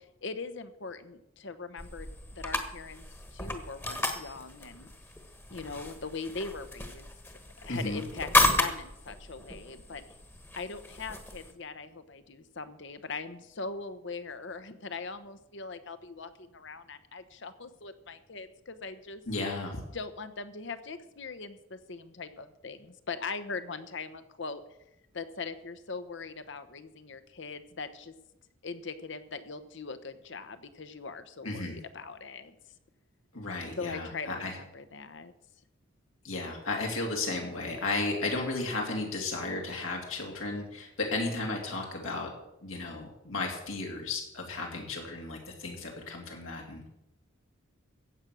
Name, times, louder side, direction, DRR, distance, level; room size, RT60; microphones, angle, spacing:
voice 1, 0.0-3.0 3.3-4.9 5.5-10.0 10.6-19.2 19.9-24.6 25.1-28.1 28.6-32.5 33.8-35.3, left 4 dB, 60° left, 11 dB, 1.0 m, -41 dB
sound 1, 1.8-11.5, left 2 dB, 10° left, 1.3 m, -33 dB
voice 2, 7.7-8.0 19.3-19.8 31.4-31.8 33.3-34.6 36.2-42.3 42.6-46.9, left 3 dB, 85° left, 0 dB, 2.9 m, -34 dB
14.5 x 8.5 x 6.3 m, 0.87 s
head